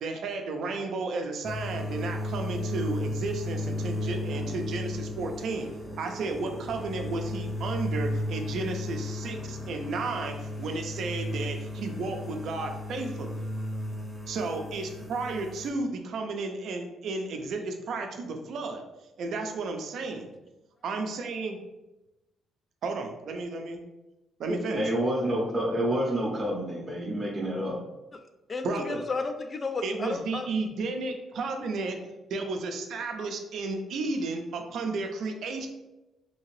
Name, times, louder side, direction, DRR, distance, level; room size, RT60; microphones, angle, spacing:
voice 1, 0.0-5.7 6.0-13.4 14.3-18.8 19.2-20.3 20.8-21.6 22.8-23.8 24.4-24.9 28.6-29.0 29.8-32.0 32.3-35.7, right 3 dB, 70° right, 5 dB, 0.5 m, -33 dB
sound 1, 1.4-15.7, left 1 dB, 10° left, 0.7 m, -34 dB
voice 2, 24.5-27.8, equal, 20° right, -3 dB, 0.6 m, -28 dB
voice 3, 28.5-30.5, left 3 dB, 35° left, 7 dB, 0.4 m, -33 dB
2.8 x 2.7 x 3.1 m, 1.0 s
cardioid pair, 90°, 0 cm